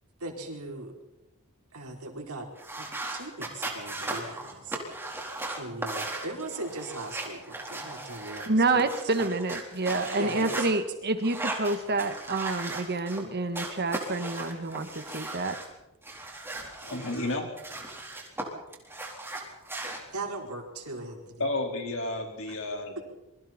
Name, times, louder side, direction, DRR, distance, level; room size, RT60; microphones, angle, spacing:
voice 1, 0.2-0.9 1.7-2.5 2.8-2.9 3.1-4.8 5.5-8.8 10.2-10.7 20.1-21.4 22.5-22.6 23.0-23.1, right 2 dB, 85° right, 2 dB, 4.5 m, -38 dB
sound 1, 2.6-10.7 11.2-13.2 13.5-15.7 16.0-18.4 18.7-20.0, right 2 dB, 10° right, 4.2 m, -37 dB
voice 2, 8.5-15.6, right 2 dB, 50° right, 9 dB, 1.8 m, -28 dB
voice 3, 16.8-17.5 21.4-23.0, left 2 dB, 65° left, 2 dB, 4.7 m, -31 dB
27.0 x 23.0 x 4.5 m, 0.95 s
head